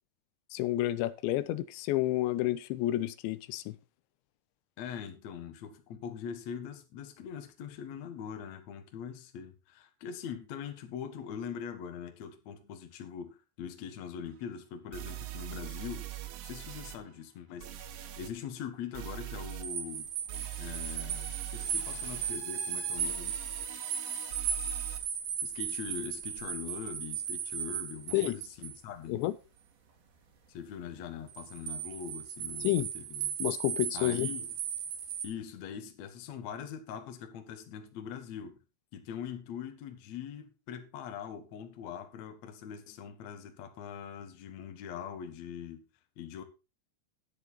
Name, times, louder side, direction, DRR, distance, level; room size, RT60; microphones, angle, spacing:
voice 1, 0.5-3.8 28.1-28.4 29.1-29.4 32.6-32.9 33.4-34.3, left 15 dB, 85° left, 3.0 m, -30 dB
voice 2, 4.8-16.1 16.4-17.7 18.2-20.1 20.6-23.4 25.4-29.2 30.5-33.4 33.9-34.5 35.2-38.6 38.9-45.8 46.2-46.4, left 8 dB, 60° left, 1.9 m, -42 dB
sound 1, 14.3-14.4 14.9-17.0 17.6-18.3 18.9-19.7 20.3-25.0, right 14 dB, 85° right, 3.6 m, -42 dB
sound 2, 19.4-28.8 31.3-35.3, right 7 dB, 70° right, 4.3 m, -36 dB
10.5 x 9.9 x 4.1 m
omnidirectional pair, 5.1 m